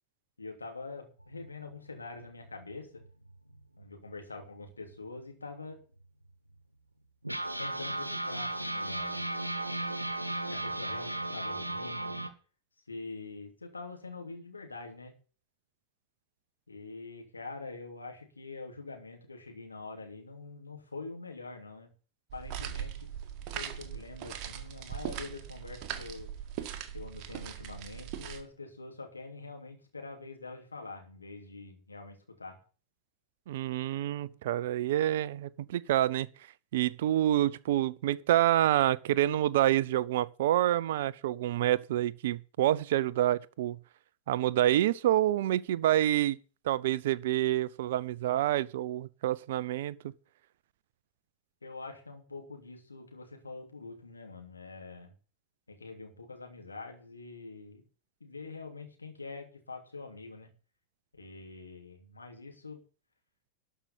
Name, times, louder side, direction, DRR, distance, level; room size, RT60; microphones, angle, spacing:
voice 1, 0.4-3.0 3.8-5.8 7.6-9.2 10.5-12.1 12.9-15.1 16.7-21.9 22.3-23.1 23.5-26.3 26.6-26.7 26.9-32.6 51.6-55.1 55.7-57.9 58.2-60.5 61.1-62.8, left 3 dB, 80° left, 3.1 m, -45 dB
sound 1, 1.2-4.4 4.9-5.0 5.2-5.4 6.0-6.1 7.2-12.3, right 2 dB, 85° right, 1.1 m, -36 dB
sound 2, 22.3-28.4, right 9 dB, 40° right, 1.7 m, -40 dB
voice 2, 33.5-36.3 36.7-43.8 44.3-46.4 46.6-50.1, right 13 dB, 55° right, 0.5 m, -27 dB
13.0 x 5.7 x 7.4 m
figure-of-eight pair, 90°, 0 cm